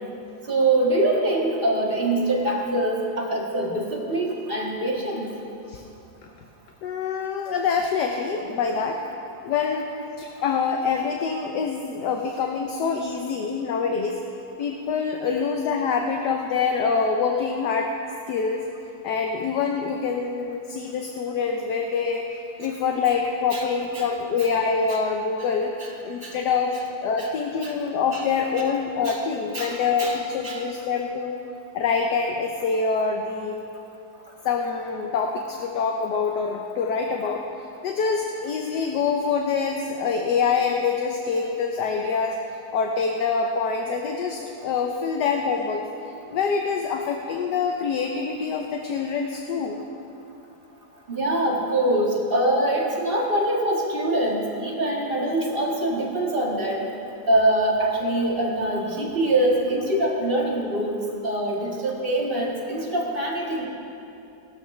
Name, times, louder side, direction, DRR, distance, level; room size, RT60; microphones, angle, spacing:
voice 1, 0.4-5.3 23.5-23.6 23.9-24.1 24.4-24.5 24.9-25.0 25.8-25.9 26.2-26.4 27.2-27.3 27.6-27.7 28.1-28.2 29.0-29.2 29.5-30.2 30.4-30.6 51.1-56.8 57.3-63.6, right 1 dB, 30° right, -3 dB, 1.8 m, -24 dB
voice 2, 6.8-9.0 9.4-9.9 10.2-14.2 14.6-17.9 18.3-18.7 19.0-22.3 22.6-25.7 26.0-26.8 27.0-31.4 31.7-33.6 34.4-37.4 37.8-42.4 42.7-45.8 46.3-49.8, left 5 dB, 70° left, 2 dB, 1.3 m, -25 dB
18.5 x 12.5 x 3.2 m, 2.7 s
omnidirectional pair, 1.9 m